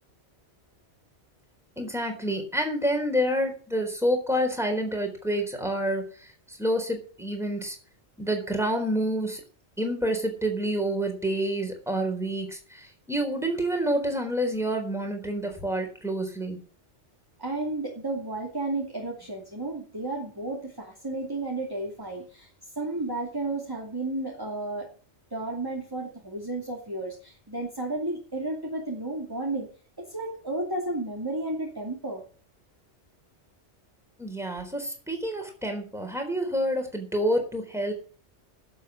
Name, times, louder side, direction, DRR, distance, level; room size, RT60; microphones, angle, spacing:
voice 1, 1.8-7.8 8.2-9.4 9.8-16.6 34.2-37.9, equal, ahead, 3 dB, 4.0 m, -28 dB
voice 2, 17.4-22.5 22.8-24.9 25.3-29.7 30.0-32.2, right 2 dB, 20° right, -2 dB, 2.7 m, -32 dB
12.0 x 7.6 x 8.7 m, 0.40 s
omnidirectional pair, 1.2 m